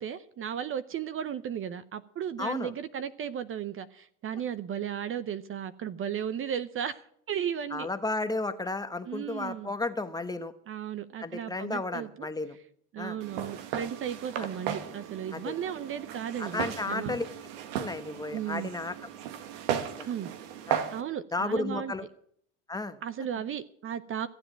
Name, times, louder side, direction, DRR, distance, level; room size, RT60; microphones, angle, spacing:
voice 1, 0.0-7.9 9.1-9.7 10.7-12.3 12.9-17.2 18.3-18.7 19.7-20.3 20.9-21.9 23.0-24.3, right 9 dB, 40° right, 15 dB, 0.7 m, -35 dB
voice 2, 2.4-2.7 7.7-10.5 11.2-12.6 13.0-13.2 15.3-15.6 16.4-17.3 17.7-18.9 19.8-20.1 20.7-20.8 21.3-22.1 22.7-23.0, left 2 dB, 10° left, 10 dB, 1.0 m, -33 dB
Walk footsteps, 13.2-21.0, right 9 dB, 85° right, 1.6 m, -36 dB
15.0 x 7.8 x 8.9 m, 0.66 s
supercardioid pair, 105°, 34 cm